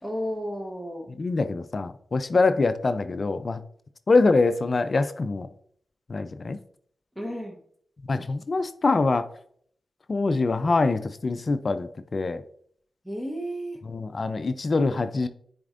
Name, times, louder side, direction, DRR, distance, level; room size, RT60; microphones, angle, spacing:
voice 1, 0.0-1.1 7.2-7.6 13.0-13.8, equal, 5° right, 3 dB, 1.1 m, -32 dB
voice 2, 1.2-3.6 4.1-5.5 6.1-6.6 8.1-9.3 10.1-12.4 13.9-15.3, left 3 dB, 50° left, 11 dB, 0.4 m, -24 dB
9.6 x 4.3 x 2.5 m, 0.63 s
cardioid pair, 55°, 0 cm